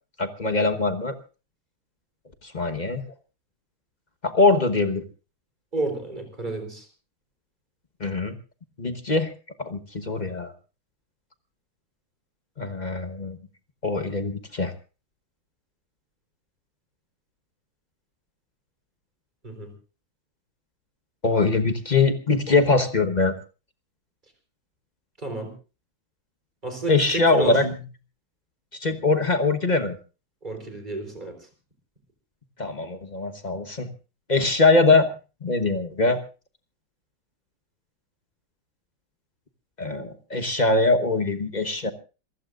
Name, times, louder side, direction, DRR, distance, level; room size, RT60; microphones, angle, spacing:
voice 1, 0.2-1.1 2.5-3.0 4.2-5.0 8.0-8.3 8.8-9.3 9.6-10.5 12.6-13.4 13.8-14.7 21.2-23.3 26.9-27.8 28.8-30.0 32.6-33.9 34.3-35.1 35.4-36.2 39.8-41.9, left 3 dB, 30° left, 8 dB, 0.9 m, -22 dB
voice 2, 5.7-6.9 19.4-19.7 25.2-25.5 26.6-27.6 30.4-31.4, right 3 dB, 20° right, 6 dB, 4.3 m, -31 dB
27.5 x 16.0 x 2.5 m, 0.33 s
omnidirectional pair, 2.3 m